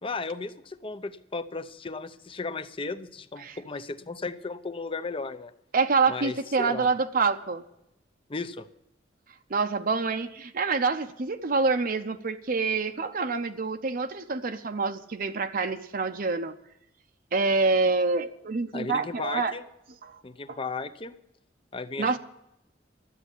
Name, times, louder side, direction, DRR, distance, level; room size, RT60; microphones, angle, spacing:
voice 1, 0.0-5.5 6.1-6.9 8.3-8.7 18.7-19.6 20.2-21.1 21.7-22.2, left 3 dB, 30° left, 12 dB, 0.7 m, -35 dB
voice 2, 5.7-7.6 9.5-16.5 17.3-19.5 20.1-20.2 20.5-20.6 22.0-22.2, right 4 dB, 50° right, 7 dB, 0.7 m, -26 dB
12.5 x 8.2 x 9.9 m, 0.82 s
head